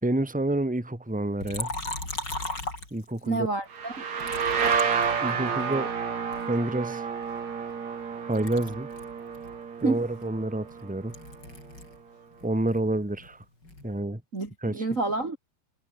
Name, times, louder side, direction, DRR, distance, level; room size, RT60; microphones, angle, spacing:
voice 1, 0.0-1.7 2.9-3.5 5.2-5.9 6.5-7.0 8.3-8.9 9.8-11.1 12.4-13.4 13.8-14.2 14.6-14.8, right 1 dB, ahead, 3.3 m, -28 dB
Liquid, 1.4-3.4 4.2-5.7 6.3-8.1 8.3-12.0 12.3-13.9, left 2 dB, 25° left, 8.5 m, -38 dB
voice 2, 3.2-4.1 9.8-10.0 14.3-15.4, right 3 dB, 20° right, 2.8 m, -28 dB
sound 1, 3.7-11.3, right 6 dB, 45° right, 4.1 m, -30 dB
omnidirectional pair, 4.9 m